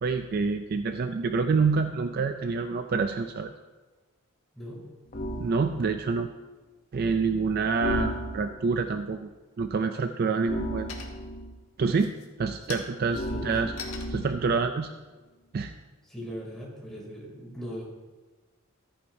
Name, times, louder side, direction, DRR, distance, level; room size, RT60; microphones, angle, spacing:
voice 1, 0.0-3.5 5.4-6.3 6.9-9.3 9.6-10.9 11.8-12.1 12.4-13.7 14.1-14.9 15.5-15.7, right 4 dB, 45° right, 8 dB, 0.4 m, -27 dB
sound 1, 5.1-5.6 7.8-8.7 10.5-11.6 13.1-14.5, equal, 40° left, 0.7 m, -34 dB
sound 2, 10.9-11.5 11.9-16.3, left 5 dB, 75° left, 1.4 m, -45 dB
voice 2, 13.3-13.7 16.1-17.8, equal, ahead, -4 dB, 2.9 m, -39 dB
14.0 x 9.3 x 2.7 m, 1.3 s
head